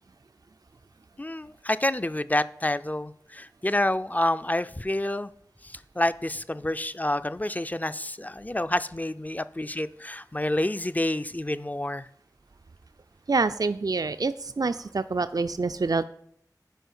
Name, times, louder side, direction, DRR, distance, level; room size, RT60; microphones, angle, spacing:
voice 1, 1.2-5.3 5.6-12.1, left 1 dB, 25° left, 13 dB, 0.4 m, -28 dB
voice 2, 13.3-16.0, right 3 dB, 65° right, 11 dB, 0.3 m, -26 dB
10.0 x 5.0 x 5.5 m, 0.70 s
wide cardioid pair, 40°, 7 cm